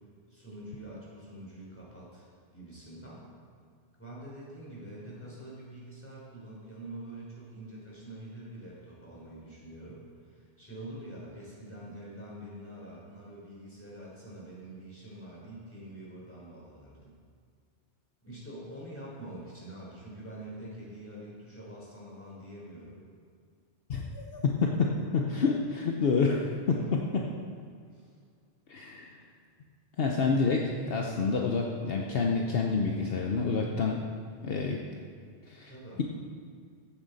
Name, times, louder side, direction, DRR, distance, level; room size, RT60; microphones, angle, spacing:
voice 1, 0.3-2.3 2.5-3.2 4.0-17.1 18.2-23.0 26.7-27.0 27.3-27.4 27.8-28.1 35.7-36.0, right 1 dB, 10° left, -6 dB, 3.7 m, -45 dB
voice 2, 23.9-27.2 28.7-29.2 30.0-34.0 34.4-34.8 35.5-35.7, left 4 dB, 65° left, 0 dB, 1.0 m, -28 dB
15.0 x 9.1 x 4.1 m, 2.1 s
omnidirectional pair, 1.1 m